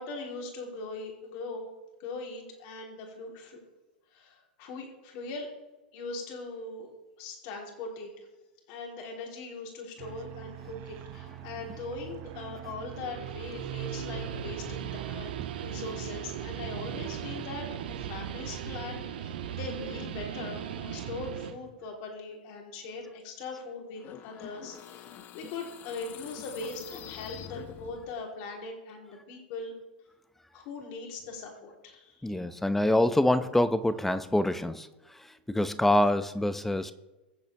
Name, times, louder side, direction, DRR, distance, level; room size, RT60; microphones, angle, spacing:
voice 1, 0.0-1.7 2.0-3.6 4.1-5.5 5.9-6.9 7.2-8.3 8.7-15.3 15.6-29.7 30.5-32.4, left 3 dB, 50° left, 1 dB, 3.7 m, -40 dB
sound 1, 10.0-17.5, right 13 dB, 45° right, 0.8 m, -44 dB
Guitar, 12.8-21.6, right 9 dB, 70° right, 1.5 m, -38 dB
sound 2, 24.0-28.2, left 10 dB, 35° left, 1.0 m, -46 dB
voice 2, 32.2-34.9 35.5-36.9, left 1 dB, 5° left, 12 dB, 0.8 m, -25 dB
23.5 x 8.0 x 3.5 m, 1.1 s
hypercardioid pair, 105°, 5 cm